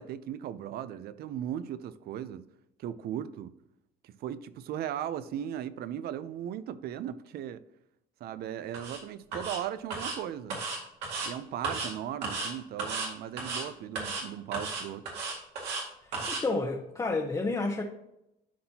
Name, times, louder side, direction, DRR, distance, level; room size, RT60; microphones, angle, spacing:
voice 1, 0.0-2.5 2.8-3.5 4.0-7.6 8.2-10.6 11.2-15.0, right 10 dB, 65° right, 0.5 m, -37 dB
sound 1, 8.7-9.0 9.3-9.6 9.9-10.2 10.5-11.3 11.6-11.9 12.2-12.5 12.8-13.1 13.4-13.6 14.0-14.2 14.5-15.8 16.1-16.4, right 3 dB, 85° right, 2.0 m, -34 dB
voice 2, 16.0-17.8, left 3 dB, 20° left, 0.8 m, -30 dB
11.5 x 4.3 x 2.8 m
cardioid pair, 110°, 17 cm